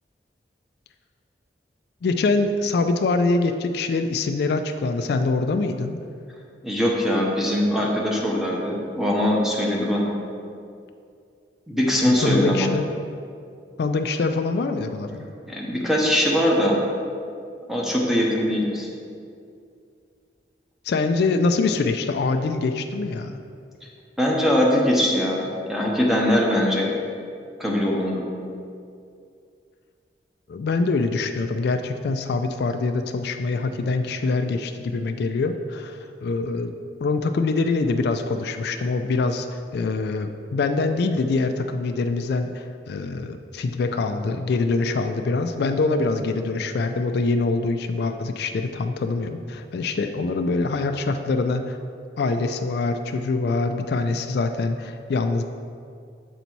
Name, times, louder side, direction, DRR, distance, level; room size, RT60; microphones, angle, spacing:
voice 1, 2.0-6.0 12.0-12.9 13.8-15.3 20.9-23.4 30.5-36.7 37.0-39.5 39.7-51.8 52.2-55.4, left 3 dB, 65° left, 7 dB, 0.3 m, -24 dB
voice 2, 6.6-10.1 11.7-12.7 15.5-16.8 17.7-18.9 24.2-26.9 27.6-28.2, equal, ahead, -2 dB, 0.8 m, -21 dB
7.0 x 4.0 x 4.5 m, 2.4 s
head